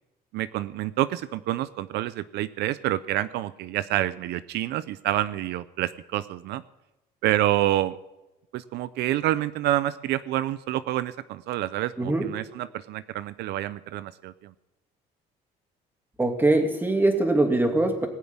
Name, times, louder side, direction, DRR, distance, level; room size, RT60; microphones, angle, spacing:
voice 1, 0.3-6.6 7.2-8.0 8.5-14.3, right 14 dB, 80° right, 15 dB, 0.6 m, -28 dB
voice 2, 16.2-18.1, right 2 dB, 10° right, 4 dB, 2.5 m, -22 dB
19.5 x 7.0 x 8.8 m, 0.97 s
cardioid pair, 110°, 17 cm